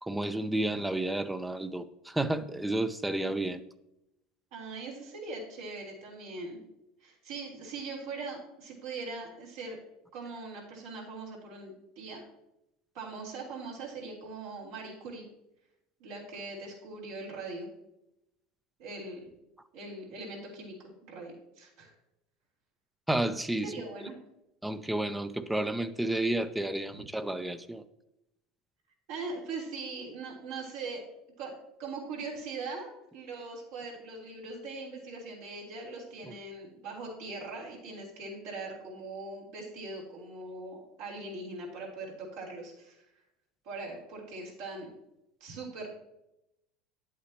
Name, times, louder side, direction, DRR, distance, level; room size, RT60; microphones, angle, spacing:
voice 1, 0.0-3.6 23.1-23.7 24.6-27.8 36.2-36.3, right 1 dB, 5° right, 12 dB, 0.6 m, -31 dB
voice 2, 4.5-6.6 7.0-9.8 10.1-12.2 12.9-15.2 16.0-17.7 18.8-19.2 19.7-21.9 23.6-24.1 29.1-31.0 31.4-31.5 31.8-43.0 43.6-44.9 45.4-45.9, right 3 dB, 70° right, -3 dB, 3.6 m, -41 dB
10.0 x 8.2 x 2.9 m, 0.86 s
hypercardioid pair, 85°, 0 cm